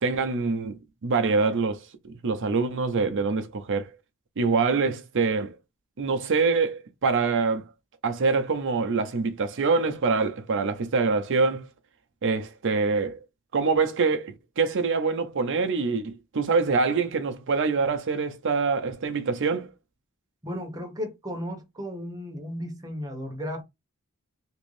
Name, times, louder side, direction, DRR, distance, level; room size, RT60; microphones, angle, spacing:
voice 1, 0.0-3.9 4.4-5.6 6.0-7.7 8.0-11.7 12.2-13.2 13.5-19.7, right 4 dB, 60° right, 0.6 m, -25 dB
voice 2, 20.4-23.6, equal, 15° right, 0.9 m, -34 dB
2.9 x 2.6 x 3.2 m
head